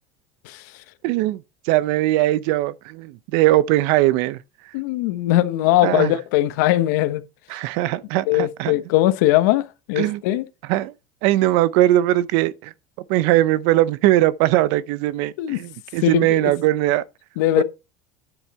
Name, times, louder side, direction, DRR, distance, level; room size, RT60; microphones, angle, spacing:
voice 1, 1.0-1.4 1.7-4.4 5.8-6.1 7.5-8.8 10.0-10.2 10.7-10.9 11.2-12.7 13.1-17.0 17.6-17.7, right 16 dB, 60° right, 0.6 m, -20 dB
voice 2, 4.7-7.2 8.3-10.4 15.4-15.6 16.0-16.5 17.4-17.6, left 14 dB, 75° left, 1.2 m, -20 dB
10.0 x 7.2 x 4.3 m
cardioid pair, 155°, 10 cm